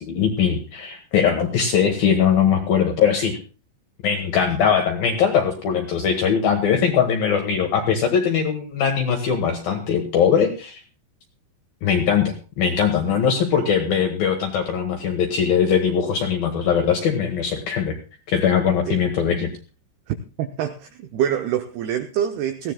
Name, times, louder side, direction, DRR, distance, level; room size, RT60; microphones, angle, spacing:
voice 1, 0.0-3.4 4.0-10.8 11.8-18.0 18.3-19.5, left 7 dB, 70° left, 2.4 m, -21 dB
voice 2, 20.1-22.7, right 10 dB, 85° right, 2.3 m, -26 dB
20.0 x 15.0 x 2.2 m
omnidirectional pair, 5.8 m